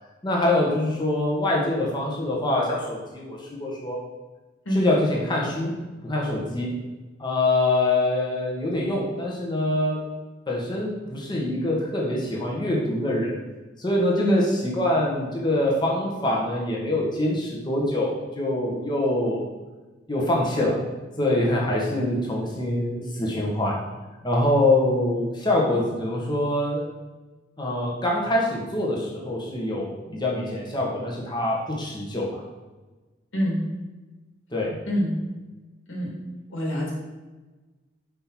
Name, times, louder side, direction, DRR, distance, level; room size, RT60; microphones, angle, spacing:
voice 1, 0.2-4.0 4.7-5.7 6.0-6.7 7.2-10.0 10.5-13.4 13.8-19.5 20.1-20.8 21.2-23.8 24.2-26.8 27.6-32.4 34.5-34.8, left 1 dB, 20° left, -3 dB, 1.6 m, -24 dB
voice 2, 34.9-35.2 35.9-36.1 36.5-36.9, equal, 90° left, -2 dB, 2.7 m, -25 dB
5.5 x 5.5 x 6.0 m, 1.2 s
head